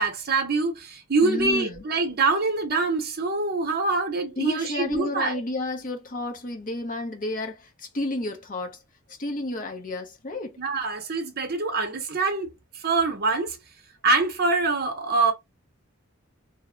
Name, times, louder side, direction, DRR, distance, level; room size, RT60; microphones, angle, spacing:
voice 1, 0.0-5.4 10.6-13.6 14.0-15.3, right 3 dB, 50° right, 0.8 m, -25 dB
voice 2, 1.2-1.8 4.4-8.8 9.2-10.6, left 1 dB, 40° left, 0.7 m, -31 dB
2.8 x 2.1 x 3.6 m
head